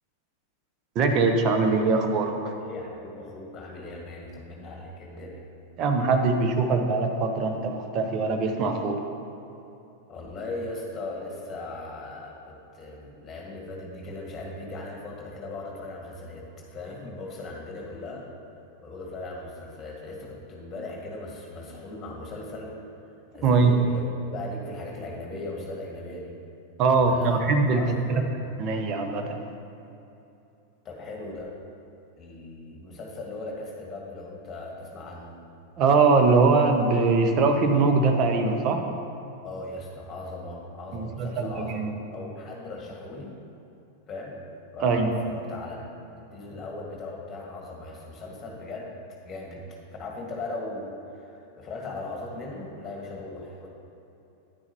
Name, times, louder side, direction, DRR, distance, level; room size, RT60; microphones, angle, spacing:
voice 1, 0.9-2.3 5.8-9.0 23.4-23.8 26.8-27.8 28.1-28.2 28.6-29.4 35.8-38.8 40.9-41.9 44.8-45.1, right 4 dB, 35° right, 4 dB, 0.9 m, -22 dB
voice 2, 2.6-5.5 10.1-18.3 18.8-22.8 23.3-26.4 26.9-28.3 30.8-31.5 32.2-35.4 39.4-43.4 44.1-44.4 44.7-45.9 46.3-49.0 49.2-53.7, left 2 dB, 25° left, -2 dB, 1.9 m, -38 dB
9.8 x 9.4 x 3.1 m, 2.8 s
figure-of-eight pair, 90°, 0 cm